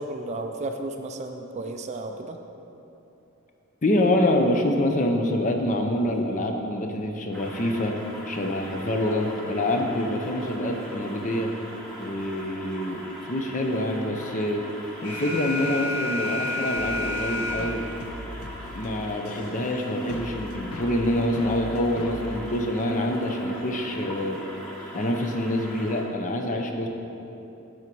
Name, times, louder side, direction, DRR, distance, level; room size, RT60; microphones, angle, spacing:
voice 1, 0.0-2.4, right 2 dB, 30° right, 5 dB, 0.3 m, -33 dB
voice 2, 3.8-8.0 8.3-11.5 12.0-14.7 15.0-17.9 18.7-24.4 24.9-26.9, left 1 dB, 35° left, 3 dB, 0.6 m, -26 dB
sound 1, 7.3-26.0, equal, 5° left, 1.0 m, -41 dB
Alarm, 15.0-18.0, left 2 dB, 55° left, 1.7 m, -30 dB
sound 2, 16.8-23.4, left 1 dB, 80° left, 0.7 m, -40 dB
8.7 x 5.1 x 4.6 m, 2.9 s
head